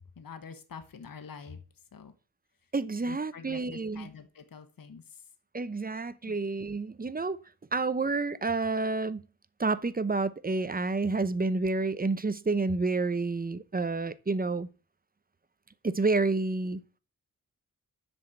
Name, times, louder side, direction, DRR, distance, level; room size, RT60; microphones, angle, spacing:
voice 1, 0.2-1.6 1.9-2.1 3.0-5.2 6.2-6.4, left 6 dB, 70° left, 1.3 m, -46 dB
voice 2, 2.7-4.1 5.5-7.4 7.7-9.2 9.6-14.7 15.8-16.8, right 3 dB, 25° right, 0.7 m, -29 dB
7.5 x 6.3 x 8.0 m
cardioid pair, 70°, 35 cm